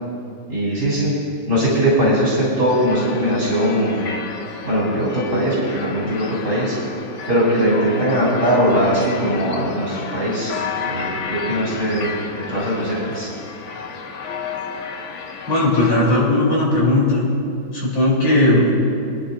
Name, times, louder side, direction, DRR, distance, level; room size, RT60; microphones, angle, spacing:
voice 1, 0.5-1.1 1.5-4.0 4.6-6.7 7.3-10.5 10.9-13.3, equal, 50° right, -7 dB, 3.6 m, -20 dB
sound 1, 2.7-16.0, left 5 dB, 65° left, 0.7 m, -32 dB
voice 2, 15.5-17.2 17.7-18.7, left 1 dB, 85° left, -5 dB, 4.4 m, -17 dB
25.5 x 9.9 x 2.6 m, 2.5 s
omnidirectional pair, 2.2 m